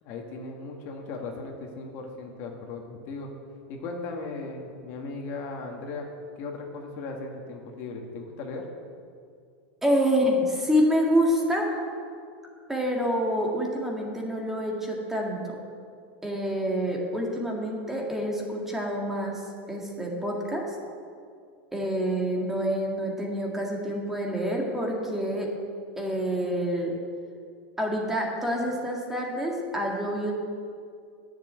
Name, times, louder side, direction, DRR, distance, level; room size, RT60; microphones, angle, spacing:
voice 1, 0.0-3.3 3.7-6.1 6.4-8.7, left 3 dB, 45° left, 2 dB, 1.8 m, -37 dB
voice 2, 9.8-11.7 12.7-15.6 16.2-20.6 21.7-25.5 26.0-26.9 27.8-30.3, equal, 5° right, -1 dB, 1.9 m, -27 dB
10.5 x 7.5 x 9.3 m, 2.3 s
supercardioid pair, 145°, 6 cm